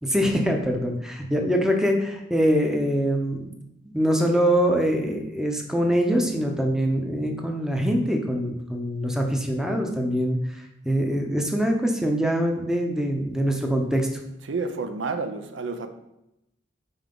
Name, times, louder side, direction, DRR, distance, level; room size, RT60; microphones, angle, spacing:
voice 1, 0.0-3.5 3.9-10.4 10.8-14.1, equal, 5° right, 2 dB, 0.6 m, -23 dB
voice 2, 14.5-15.9, right 4 dB, 85° right, 8 dB, 0.5 m, -29 dB
5.5 x 4.6 x 3.8 m, 0.86 s
head